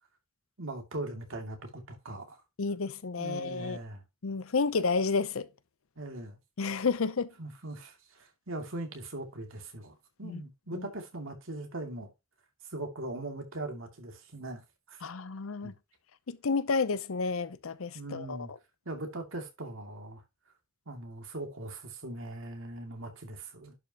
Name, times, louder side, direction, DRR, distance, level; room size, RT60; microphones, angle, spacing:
voice 1, 0.6-2.4 3.2-4.0 6.0-6.4 7.4-12.1 12.7-15.0 15.6-15.7 17.9-18.5 18.9-20.2 20.9-23.8, right 2 dB, 65° right, 2.5 m, -40 dB
voice 2, 2.6-3.8 4.2-5.5 6.6-7.3 10.2-10.4 10.7-10.9 15.0-15.7 16.3-18.5, left 4 dB, 70° left, 0.7 m, -31 dB
11.0 x 5.5 x 2.9 m
head